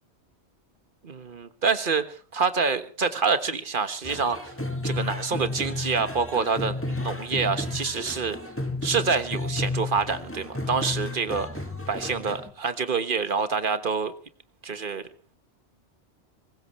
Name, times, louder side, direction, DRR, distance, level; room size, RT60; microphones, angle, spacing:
voice 1, 1.0-2.0 2.3-4.5 4.8-8.4 8.8-11.5 11.9-14.1 14.6-15.0, right 5 dB, 50° right, 10 dB, 1.5 m, -26 dB
sound 1, 4.0-12.5, left 2 dB, 10° left, 1.8 m, -32 dB
23.0 x 19.5 x 3.2 m, 0.41 s
omnidirectional pair, 1.1 m